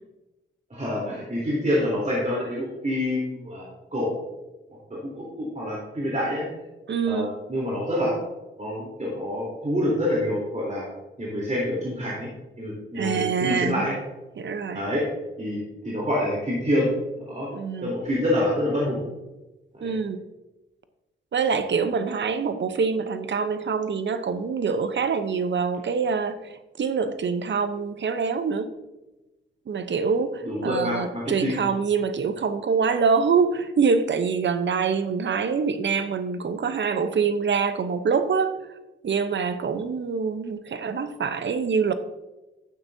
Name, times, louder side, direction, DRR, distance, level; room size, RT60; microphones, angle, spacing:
voice 1, 0.7-3.6 3.9-4.1 5.0-6.4 7.0-8.1 8.6-10.9 11.2-12.3 12.6-13.9 14.7-15.0 15.4-16.9 17.3-17.5 17.8-19.0 19.7-20.0 30.4-31.6, left 1 dB, 35° right, -5 dB, 3.6 m, -27 dB
voice 2, 6.9-7.3 12.9-13.9 14.4-14.8 17.5-17.9 19.8-20.2 21.3-28.7 29.7-38.6 39.0-41.9, right 5 dB, 60° right, 10 dB, 0.9 m, -25 dB
11.5 x 8.9 x 2.7 m, 1.0 s
cardioid pair, 55°, 21 cm